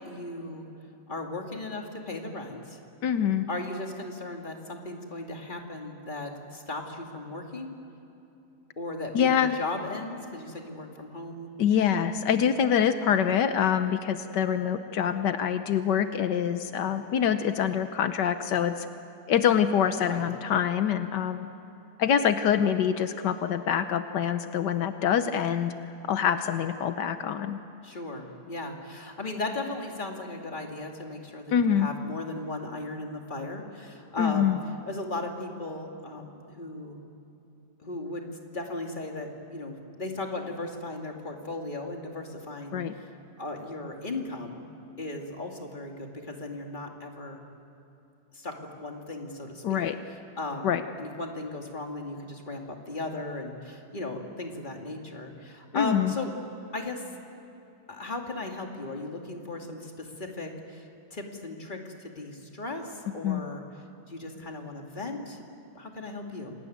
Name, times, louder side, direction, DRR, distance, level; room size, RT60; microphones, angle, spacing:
voice 1, 0.1-0.7 1.1-2.8 3.5-7.7 8.8-11.5 20.1-20.2 27.8-34.5 34.9-37.0 37.8-38.3 38.5-42.8 43.4-44.6 45.0-47.4 48.3-49.8 50.4-50.7 51.0-56.3 56.7-57.0 57.9-60.8 61.1-63.6 64.1-65.4 65.7-66.5, left 2 dB, 25° left, 2 dB, 2.6 m, -36 dB
voice 2, 3.0-3.5 9.1-9.6 11.6-18.8 19.3-21.5 22.0-25.7 26.1-27.6 31.5-31.9 34.2-34.6 42.7-42.9 49.6-50.0 50.6-50.8 55.7-56.2 63.2-63.5, left 8 dB, 80° left, 9 dB, 1.5 m, -25 dB
27.5 x 19.5 x 9.4 m, 2.9 s
omnidirectional pair, 1.8 m